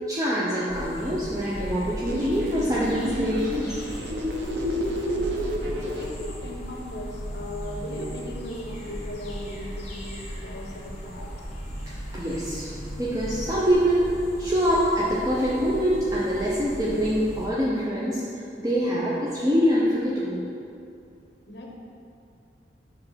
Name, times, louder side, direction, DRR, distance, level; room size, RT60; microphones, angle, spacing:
voice 1, 0.1-3.8 12.1-12.7 13.0-14.1 14.4-18.2 18.6-20.4, equal, 20° right, -7 dB, 0.7 m, -24 dB
sound 1, 0.7-17.5, equal, 40° left, 1.4 m, -37 dB
sound 2, 2.1-6.1, equal, 85° right, 0.8 m, -30 dB
voice 2, 5.7-11.3 21.5-21.8, left 1 dB, 70° left, 0 dB, 1.0 m, -37 dB
6.9 x 3.4 x 5.6 m, 2.5 s
head